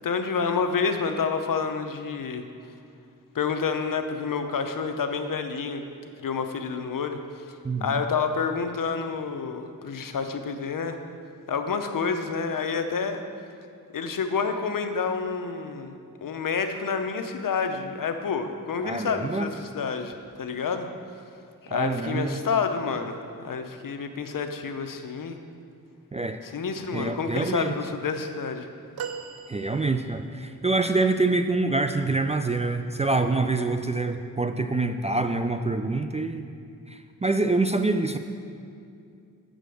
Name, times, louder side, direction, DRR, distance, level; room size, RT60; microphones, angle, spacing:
voice 1, 0.0-2.4 3.3-5.8 6.2-7.5 7.8-11.0 11.5-13.2 13.9-20.9 21.6-23.2 23.4-25.4 26.4-28.7, left 5 dB, 65° left, 7 dB, 0.7 m, -29 dB
voice 2, 7.6-8.0 18.8-19.5 21.7-22.4 26.1-26.4 26.9-27.8 29.5-36.5 36.9-38.2, right 3 dB, 20° right, 7 dB, 0.3 m, -26 dB
sound 1, 29.0-30.4 32.8-33.0 34.3-34.4, right 7 dB, 85° right, 0.5 m, -38 dB
7.7 x 5.1 x 6.3 m, 2.4 s
cardioid pair, 65°, 36 cm